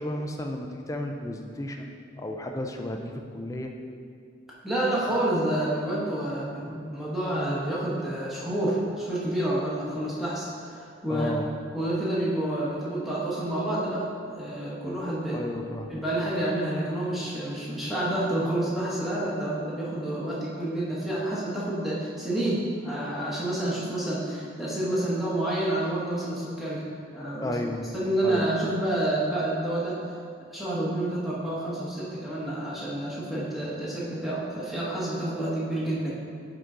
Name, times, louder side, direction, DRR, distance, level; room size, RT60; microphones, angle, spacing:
voice 1, 0.0-3.7 11.1-11.5 15.3-16.0 27.4-27.9 28.2-28.5, left 1 dB, 15° left, 3 dB, 0.4 m, -33 dB
voice 2, 4.6-11.3 11.7-15.4 15.9-26.8 27.1-27.6 27.9-30.0 30.4-36.1, right 1 dB, ahead, -8 dB, 1.2 m, -29 dB
9.1 x 3.9 x 3.8 m, 2.3 s
head